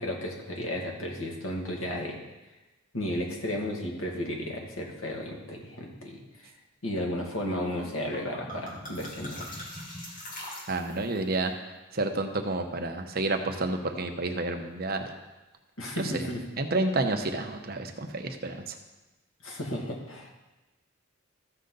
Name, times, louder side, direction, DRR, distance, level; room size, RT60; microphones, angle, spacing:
voice 1, 0.0-2.2 2.9-6.5 6.8-9.5 15.8-16.4 19.4-20.3, left 1 dB, 80° left, -1 dB, 2.2 m, -34 dB
sound 1, 7.8-11.2, left 1 dB, 40° left, 2.5 m, -41 dB
voice 2, 10.7-11.5 11.9-15.1 16.0-16.2 16.6-18.7, right 2 dB, 50° right, 5 dB, 0.9 m, -30 dB
14.5 x 6.8 x 4.0 m, 1.1 s
head